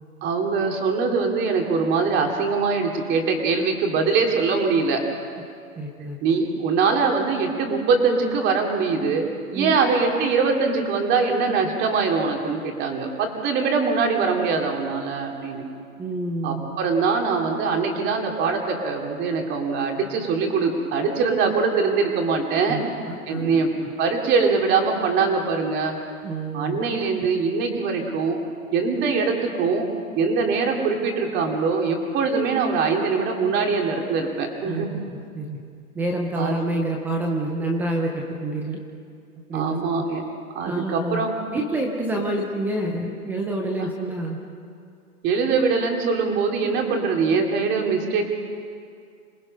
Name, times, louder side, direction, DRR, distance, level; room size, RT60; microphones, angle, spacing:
voice 1, 0.2-5.0 6.2-9.2 9.5-15.6 16.4-22.8 23.3-23.7 24.0-26.0 26.5-28.4 28.7-29.9 30.2-34.9 36.3-36.6 39.5-40.2 40.5-41.4 43.8-43.9 45.2-48.3, right 4 dB, 25° right, 2 dB, 2.7 m, -22 dB
voice 2, 5.8-6.2 9.5-9.8 16.0-16.7 22.7-22.8 23.1-23.9 26.2-26.8 34.7-35.0 35.3-35.6 36.0-38.8 39.5-39.8 40.6-44.4, right 2 dB, 5° right, 1 dB, 0.5 m, -28 dB
27.0 x 19.5 x 5.4 m, 2.3 s
hypercardioid pair, 145°, 44 cm